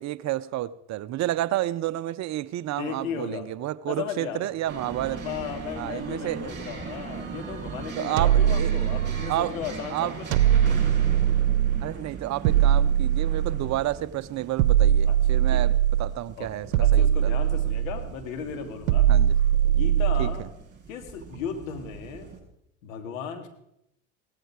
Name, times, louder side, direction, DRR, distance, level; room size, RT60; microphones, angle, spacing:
voice 1, 0.0-5.2 5.8-6.5 8.0-8.7 9.3-9.6 9.9-10.2 11.8-17.3 19.1-19.3 20.2-20.5, right 14 dB, 45° right, 0.7 m, -30 dB
voice 2, 2.8-3.5 3.8-4.5 5.2-10.8 15.1-15.2 15.5-15.8 16.4-19.1 19.7-20.4 20.9-22.3 22.8-23.5, left 7 dB, 75° left, 2.7 m, -36 dB
sound 1, 4.7-22.4, right 5 dB, 25° right, 7.5 m, -40 dB
sound 2, 8.2-9.5 10.3-11.9 12.4-13.9 14.6-16.2 16.7-18.1 18.9-20.5, right 10 dB, 75° right, 0.9 m, -21 dB
17.5 x 14.5 x 4.8 m
hypercardioid pair, 85°, 40 cm